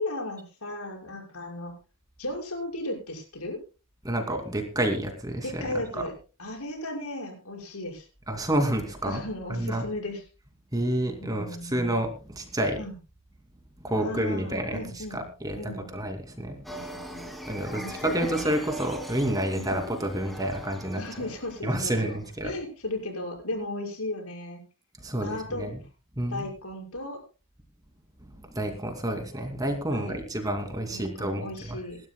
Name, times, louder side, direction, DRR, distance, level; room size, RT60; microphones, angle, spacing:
voice 1, 0.0-1.7 2.2-3.6 5.4-6.1 6.4-8.1 9.0-10.2 11.2-11.8 12.7-12.9 14.0-15.3 15.6-15.9 16.7-17.3 17.7-18.4 19.5-19.8 21.0-22.2 22.4-24.6 25.2-25.7 26.3-27.2 29.9-30.2 30.9-32.0, left 1 dB, 80° left, 1 dB, 5.9 m, -36 dB
voice 2, 4.0-6.0 8.3-9.2 9.5-9.9 10.7-12.8 13.8-16.6 17.5-21.2 21.6-22.5 25.0-25.7 26.2-26.4 28.2-31.8, right 1 dB, 15° right, 5 dB, 2.5 m, -29 dB
sound 1, 16.6-22.2, equal, ahead, 2.4 m, -40 dB
27.5 x 12.5 x 2.2 m, 0.32 s
head